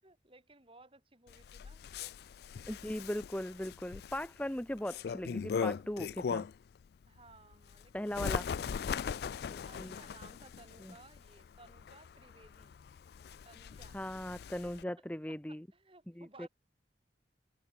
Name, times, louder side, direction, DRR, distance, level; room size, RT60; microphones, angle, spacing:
voice 1, 0.0-2.2 7.1-12.8 13.4-14.0 14.7-14.8 15.3-16.5, right 3 dB, 30° right, 5.2 m, -59 dB
Bird, 1.3-6.7 7.2-14.8, left 6 dB, 60° left, 0.3 m, -40 dB
voice 2, 2.7-6.5 7.9-8.4 9.5-9.9 10.8-10.9 13.9-15.7 16.2-16.5, left 1 dB, 10° left, 0.8 m, -39 dB
open air
head